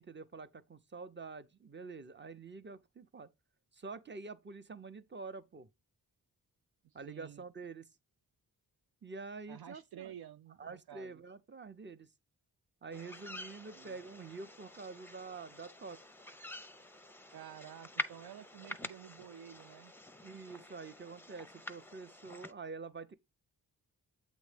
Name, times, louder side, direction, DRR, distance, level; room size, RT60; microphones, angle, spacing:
voice 1, 0.0-3.3 3.7-5.7 6.9-7.9 9.0-10.1 10.6-12.1 12.8-16.0 20.2-23.2, right 4 dB, 25° right, 0.8 m, -47 dB
voice 2, 6.8-7.4 9.5-11.2 13.7-14.0 17.3-19.9, right 10 dB, 60° right, 0.5 m, -51 dB
sound 1, 12.9-22.5, left 1 dB, 5° left, 0.7 m, -47 dB
8.3 x 3.1 x 5.1 m
cardioid pair, 45°, 42 cm